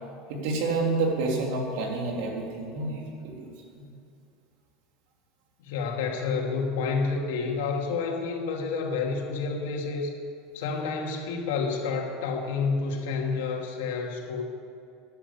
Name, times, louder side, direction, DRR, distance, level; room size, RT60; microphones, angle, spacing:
voice 1, 0.3-3.8, right 3 dB, 65° right, 0 dB, 3.4 m, -29 dB
voice 2, 5.6-10.1 10.5-14.4, left 4 dB, 85° left, 1 dB, 2.6 m, -29 dB
14.0 x 11.0 x 8.5 m, 2.5 s
supercardioid pair, 165°, 0 cm